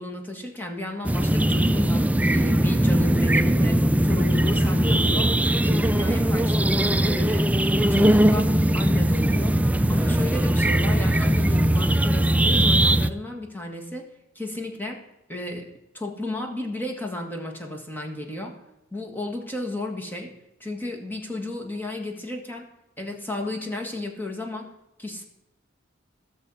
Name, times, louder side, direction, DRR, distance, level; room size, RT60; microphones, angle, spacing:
voice 1, 0.0-5.4 5.6-7.4 7.7-9.6 9.9-14.1 14.4-15.0 15.3-18.6 18.9-20.3 20.6-22.7 23.0-24.7 25.0-25.2, left 1 dB, 10° left, 2 dB, 1.7 m, -33 dB
sound 1, 1.0-13.1, right 1 dB, 5° right, 0.3 m, -20 dB
16.0 x 6.6 x 5.5 m, 0.89 s
head